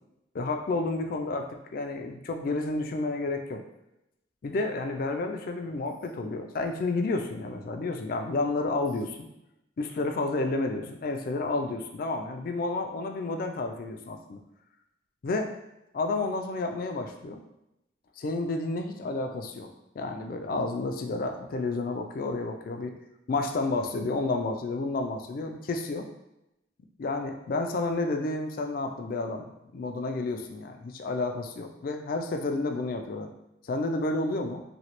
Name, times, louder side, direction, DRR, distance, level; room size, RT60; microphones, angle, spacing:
voice 1, 0.3-3.6 4.4-9.2 9.8-14.4 15.2-15.5 15.9-17.4 18.2-19.7 20.0-23.0 23.3-26.1 27.0-29.5 29.7-33.3 33.7-34.6, left 2 dB, 50° left, 4 dB, 0.3 m, -30 dB
3.0 x 2.8 x 2.9 m, 0.87 s
head